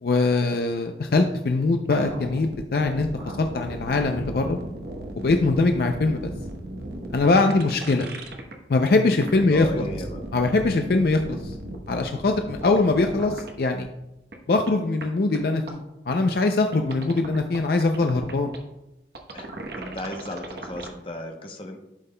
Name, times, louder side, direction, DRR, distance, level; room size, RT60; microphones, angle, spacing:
voice 1, 0.0-3.1 3.4-4.6 5.2-6.3 7.1-8.0 8.7-9.8 10.3-11.6 11.9-13.9 14.5-18.5, left 3 dB, 55° left, 5 dB, 0.4 m, -22 dB
sound 1, 1.9-8.5 8.9-13.5 13.8-13.9 14.3-14.4 14.7-14.8 15.0-15.1 15.3-15.4 15.7-15.8 16.1-16.2 16.7-18.6 19.2-20.9, right 1 dB, 65° right, 0.9 m, -36 dB
voice 2, 9.5-10.2 19.3-21.8, left 1 dB, 30° left, 3 dB, 0.8 m, -36 dB
11.5 x 5.5 x 2.2 m, 0.94 s
head